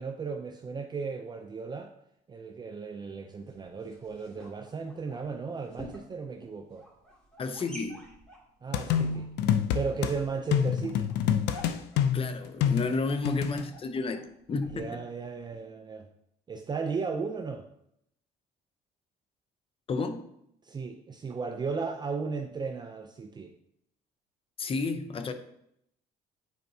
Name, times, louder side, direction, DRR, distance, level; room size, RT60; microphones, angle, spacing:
voice 1, 0.0-1.9 2.3-6.9 8.6-11.1 14.7-16.1 16.5-17.6 20.6-23.5, right 5 dB, 25° right, 5 dB, 0.5 m, -35 dB
sound 1, 3.3-15.6, left 1 dB, 5° left, 2.4 m, -51 dB
voice 2, 7.4-8.0 12.1-15.0 19.9-20.3 24.6-25.3, left 3 dB, 35° left, 9 dB, 0.7 m, -32 dB
sound 2, 8.7-10.1 10.5-13.6, left 9 dB, 90° left, 0.5 m, -27 dB
9.5 x 4.4 x 2.7 m, 0.75 s
cardioid pair, 110°, 17 cm